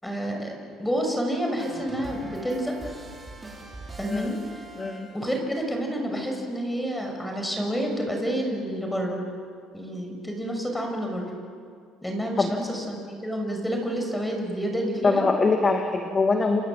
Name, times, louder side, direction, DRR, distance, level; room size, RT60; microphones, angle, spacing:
voice 1, 0.0-2.7 4.0-4.3 5.1-9.2 9.7-11.3 12.0-15.3, equal, 5° left, 2 dB, 6.0 m, -29 dB
sound 1, 1.6-5.5, right 2 dB, 15° right, 5.0 m, -42 dB
voice 2, 4.8-5.1 12.4-12.5 15.0-16.6, left 3 dB, 25° left, 3 dB, 2.4 m, -23 dB
29.0 x 25.0 x 7.8 m, 2.2 s
cardioid pair, 110°, 0 cm